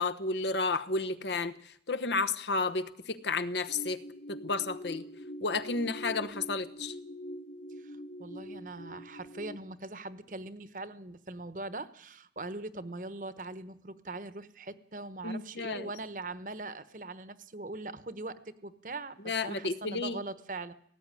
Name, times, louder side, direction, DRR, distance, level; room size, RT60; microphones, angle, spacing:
voice 1, 0.0-4.0 4.3-5.1 5.4-6.9 15.2-15.9 19.2-20.2, left 3 dB, 80° left, 10 dB, 1.1 m, -32 dB
sound 1, 3.7-9.6, equal, 45° left, 0.9 m, -44 dB
voice 2, 7.8-20.7, right 2 dB, 45° right, 13 dB, 1.1 m, -41 dB
18.0 x 15.0 x 9.8 m, 0.68 s
head